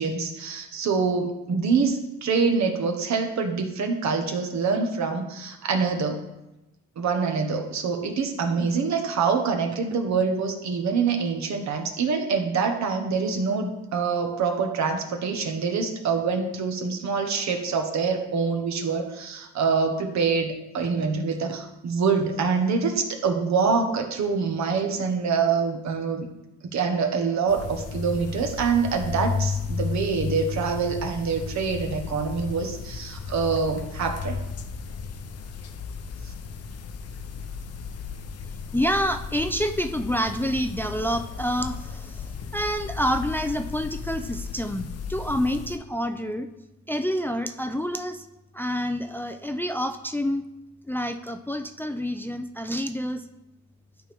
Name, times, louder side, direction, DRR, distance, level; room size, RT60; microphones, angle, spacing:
voice 1, 0.0-6.2 7.0-26.3 26.7-34.4, right 5 dB, 65° right, 4 dB, 1.3 m, -25 dB
sound 1, 27.5-45.8, left 5 dB, 55° left, 0.8 m, -34 dB
voice 2, 38.7-46.5 46.9-48.2 48.5-50.4 50.9-53.2, equal, 5° left, 7 dB, 0.4 m, -28 dB
12.0 x 4.5 x 3.5 m, 0.96 s
cardioid pair, 90°, 30 cm